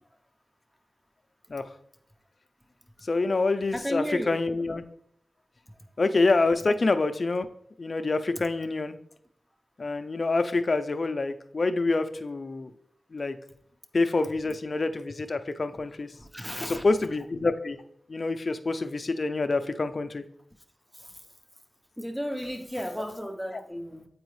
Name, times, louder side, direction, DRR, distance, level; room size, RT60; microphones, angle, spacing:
voice 1, 3.0-4.8 6.0-7.5 7.8-9.0 9.8-12.7 13.1-13.4 13.9-16.1 16.6-17.8 18.1-20.2 23.5-23.6, left 3 dB, 50° left, 9 dB, 0.4 m, -26 dB
voice 2, 3.7-4.4 16.2-16.8 22.0-24.1, equal, ahead, 7 dB, 0.7 m, -33 dB
7.8 x 4.8 x 3.1 m, 0.71 s
wide cardioid pair, 80°, 0 cm